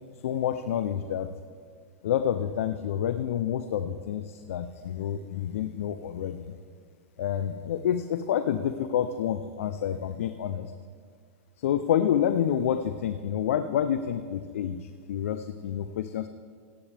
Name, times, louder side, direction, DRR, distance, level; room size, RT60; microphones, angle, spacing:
voice 1, 0.2-1.3 2.0-6.5 7.2-10.7 11.6-16.3, left 9 dB, 80° left, 10 dB, 0.5 m, -28 dB
15.5 x 10.0 x 3.4 m, 2.1 s
supercardioid pair, 135°, 7 cm